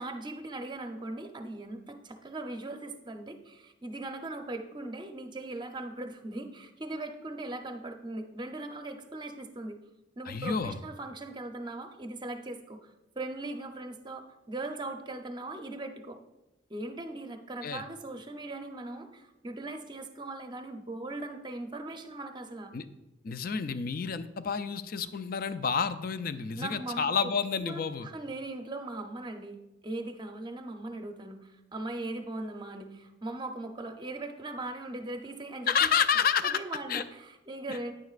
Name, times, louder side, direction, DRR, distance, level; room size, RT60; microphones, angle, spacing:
voice 1, 0.0-9.8 10.2-16.2 16.7-22.7 26.6-27.3 27.6-35.9 36.4-37.9, right 2 dB, 25° right, 6 dB, 0.6 m, -39 dB
voice 2, 10.3-10.8 17.6-17.8 22.7-22.9 23.2-28.1 35.7-36.6 36.9-37.0 37.7-37.8, left 6 dB, 50° left, 12 dB, 0.4 m, -29 dB
9.6 x 9.3 x 2.4 m, 0.95 s
head